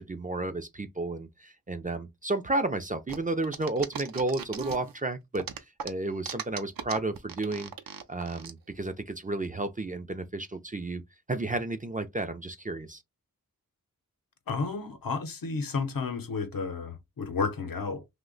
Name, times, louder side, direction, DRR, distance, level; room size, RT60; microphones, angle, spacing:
voice 1, 0.0-7.7 8.1-11.0 11.3-13.0, right 2 dB, 25° right, 0.4 m, -32 dB
sound 1, 3.1-5.0 5.3-8.5, right 7 dB, 75° right, 0.5 m, -38 dB
voice 2, 14.5-18.1, left 4 dB, 70° left, 0.7 m, -32 dB
2.7 x 2.1 x 3.7 m
wide cardioid pair, 70°, 35 cm